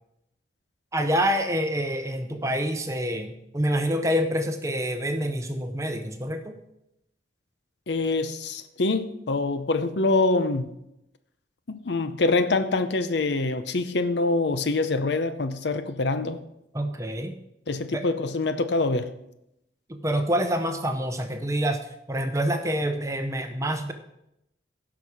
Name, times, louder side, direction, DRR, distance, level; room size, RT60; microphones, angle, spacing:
voice 1, 0.9-6.6 16.7-17.3 17.9-18.0 19.9-21.8 22.1-23.9, equal, 15° right, 6 dB, 0.8 m, -27 dB
voice 2, 7.9-10.7 11.7-16.4 17.7-19.1, left 3 dB, 70° left, 10 dB, 0.7 m, -25 dB
16.0 x 6.1 x 4.8 m, 0.83 s
head